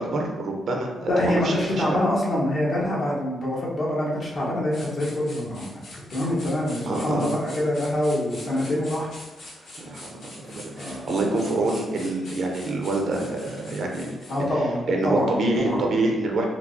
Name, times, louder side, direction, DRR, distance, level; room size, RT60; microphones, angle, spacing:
voice 1, 0.0-2.0 6.9-7.3 9.8-10.1 10.4-14.1 14.9-16.5, right 2 dB, 65° right, 1 dB, 0.6 m, -26 dB
voice 2, 1.1-5.7 6.1-9.1 10.8-11.0 11.5-11.7 14.3-15.9, left 1 dB, 55° left, -5 dB, 1.1 m, -25 dB
sound 1, 4.7-14.5, left 1 dB, 80° left, 1.4 m, -44 dB
4.5 x 2.0 x 2.6 m, 1.1 s
cardioid pair, 75°, 0 cm